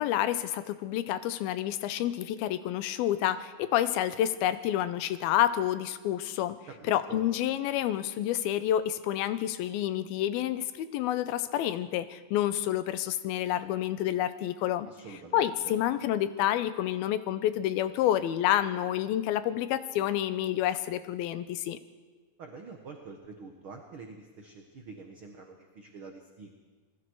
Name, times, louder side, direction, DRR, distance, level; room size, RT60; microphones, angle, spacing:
voice 1, 0.0-6.6 6.9-14.9 15.3-21.8, left 12 dB, 80° left, 12 dB, 2.7 m, -29 dB
voice 2, 6.7-7.2 14.8-15.8 22.4-26.5, right 4 dB, 55° right, 3 dB, 1.5 m, -46 dB
28.0 x 20.5 x 4.7 m, 1.3 s
omnidirectional pair, 4.4 m